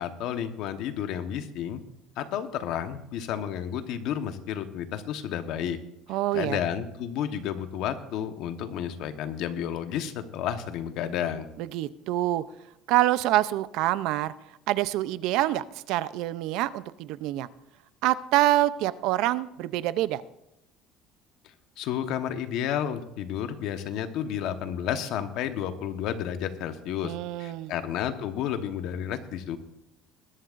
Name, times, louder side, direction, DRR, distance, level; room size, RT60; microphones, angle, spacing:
voice 1, 0.0-1.8 2.2-5.8 6.3-11.5 21.8-27.1 27.4-29.6, left 9 dB, 60° left, 9 dB, 1.1 m, -31 dB
voice 2, 6.1-6.6 11.6-12.4 12.9-14.3 14.7-17.5 18.0-20.2 27.0-27.7, right 15 dB, 65° right, 16 dB, 0.5 m, -26 dB
20.5 x 11.5 x 2.5 m, 0.86 s
cardioid pair, 160°, 0 cm